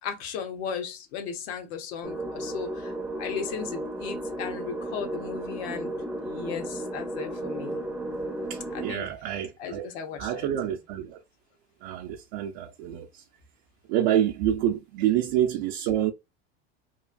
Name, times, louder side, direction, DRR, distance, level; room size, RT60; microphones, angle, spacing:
voice 1, 0.0-2.9 3.2-5.9 6.2-7.8 8.7-9.1 9.6-10.7, left 7 dB, 70° left, 0.9 m, -36 dB
sound 1, 2.0-8.9, right 1 dB, 5° right, 0.5 m, -34 dB
voice 2, 8.4-9.9 10.2-11.2 11.8-13.2 13.9-16.1, right 11 dB, 65° right, 0.5 m, -27 dB
3.0 x 2.3 x 2.4 m
supercardioid pair, 115°, 32 cm